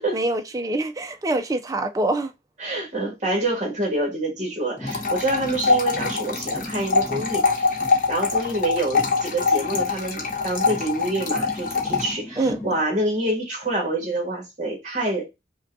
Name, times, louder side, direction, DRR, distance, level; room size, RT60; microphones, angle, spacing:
voice 1, 0.1-2.3 12.4-12.6, right 2 dB, 20° right, 0.4 m, -25 dB
voice 2, 2.6-15.3, right 1 dB, 40° right, 1.4 m, -27 dB
sound 1, 4.7-8.6 8.8-12.8, left 1 dB, 15° left, 0.6 m, -38 dB
sound 2, 4.9-12.1, left 4 dB, 45° left, 1.0 m, -24 dB
5.0 x 2.3 x 2.6 m
head